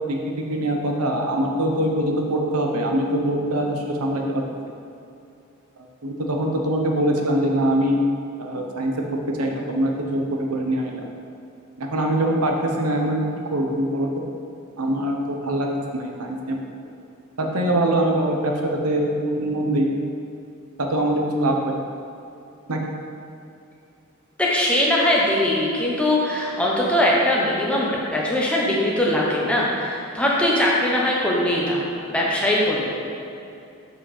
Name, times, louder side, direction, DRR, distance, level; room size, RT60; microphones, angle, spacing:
voice 1, 0.1-4.4 6.0-8.0 8.4-8.9 9.4-11.1 11.8-13.2 13.5-14.1 14.8-15.7 15.9-16.6 17.4-19.9 20.8-21.7 22.7-22.8, right 1 dB, 85° right, 1 dB, 1.0 m, -23 dB
voice 2, 24.4-31.8 32.1-32.9, left 1 dB, 5° left, -5 dB, 1.0 m, -21 dB
7.3 x 5.0 x 5.0 m, 2.6 s
head